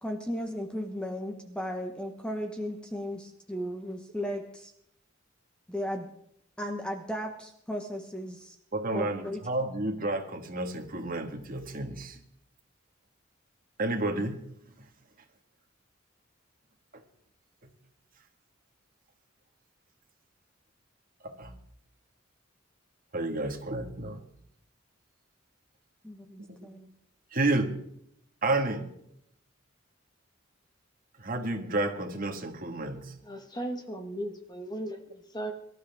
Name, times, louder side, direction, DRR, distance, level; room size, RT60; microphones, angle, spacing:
voice 1, 0.0-4.7 5.7-6.1 6.6-8.6 8.9-9.4 26.0-26.9, equal, 5° left, 4 dB, 1.0 m, -35 dB
voice 2, 8.7-12.2 13.8-14.4 21.2-21.5 23.1-24.2 27.3-27.7 28.4-28.9 31.2-33.1, right 2 dB, 45° right, 5 dB, 1.7 m, -30 dB
voice 3, 33.2-35.5, right 1 dB, 20° left, 5 dB, 1.4 m, -37 dB
23.0 x 12.5 x 3.5 m, 0.73 s
head